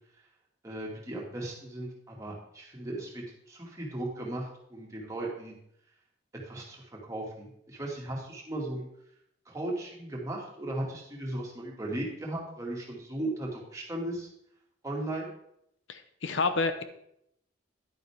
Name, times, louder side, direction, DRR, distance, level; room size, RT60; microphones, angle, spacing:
voice 1, 0.6-5.5 6.5-8.9 9.5-14.3 14.8-15.3, right 1 dB, 15° right, -3 dB, 2.2 m, -36 dB
voice 2, 15.9-16.8, left 3 dB, 85° left, 10 dB, 0.9 m, -29 dB
10.5 x 9.4 x 3.5 m, 0.75 s
head